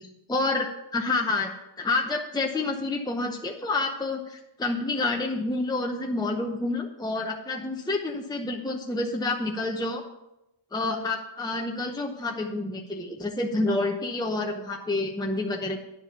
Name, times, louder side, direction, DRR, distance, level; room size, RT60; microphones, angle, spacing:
voice 1, 0.3-1.5 1.8-10.0 10.7-15.8, left 2 dB, 10° left, 1 dB, 0.8 m, -28 dB
10.5 x 4.8 x 6.9 m, 0.88 s
wide cardioid pair, 115°, 49 cm